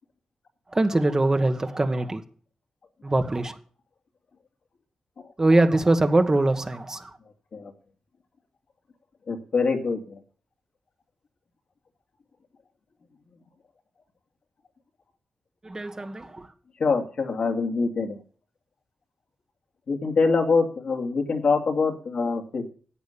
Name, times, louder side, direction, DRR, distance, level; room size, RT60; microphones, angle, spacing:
voice 1, 0.7-2.2 3.0-3.6 5.4-7.2 15.6-16.5, right 2 dB, 30° right, 7 dB, 1.4 m, -22 dB
voice 2, 9.3-10.2 16.8-18.2 19.9-22.7, left 4 dB, 70° left, 3 dB, 2.4 m, -24 dB
11.5 x 8.3 x 6.9 m, 0.44 s
cardioid pair, 60°, 2 cm